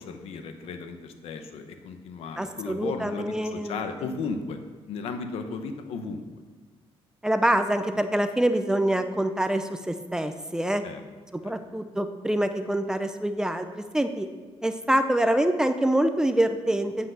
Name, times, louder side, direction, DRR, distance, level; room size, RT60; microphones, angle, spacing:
voice 1, 0.0-4.6 4.9-6.2 10.8-11.0 11.4-11.6, left 4 dB, 80° left, 7 dB, 1.0 m, -35 dB
voice 2, 2.4-3.8 7.2-10.8 11.4-14.3 14.6-17.1, right 1 dB, 5° right, 8 dB, 0.5 m, -25 dB
8.6 x 7.9 x 6.5 m, 1.4 s
cardioid pair, 150°, 10 cm